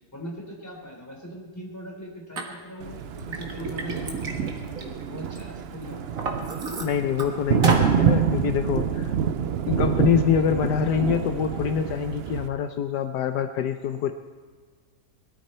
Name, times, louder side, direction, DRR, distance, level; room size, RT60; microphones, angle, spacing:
voice 1, 0.1-6.0 10.4-10.7, equal, 10° left, -1 dB, 3.5 m, -40 dB
Liquid, 2.4-2.5 3.0-5.4 5.8-7.2 7.6-7.9, right 3 dB, 55° right, 2.0 m, -31 dB
Thunder, 2.8-12.5, right 7 dB, 70° right, 0.6 m, -27 dB
voice 2, 6.8-9.1 9.7-14.1, left 7 dB, 75° left, 7 dB, 1.3 m, -25 dB
21.0 x 13.0 x 4.4 m, 1.5 s
omnidirectional pair, 1.8 m